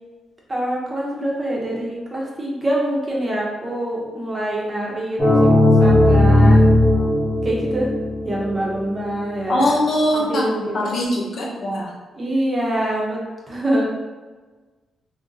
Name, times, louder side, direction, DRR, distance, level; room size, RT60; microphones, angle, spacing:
voice 1, 0.5-5.5 5.8-6.6 7.4-7.9 8.2-9.7 10.1-10.7 12.1-13.2 13.5-13.8, right 1 dB, 25° right, -3 dB, 0.8 m, -25 dB
sound 1, 5.2-8.8, left 1 dB, 35° left, 1.1 m, -15 dB
voice 2, 9.5-10.5 10.7-11.9, left 1 dB, 55° left, -4 dB, 0.8 m, -21 dB
2.5 x 2.1 x 3.9 m, 1.3 s
cardioid pair, 105°, 0 cm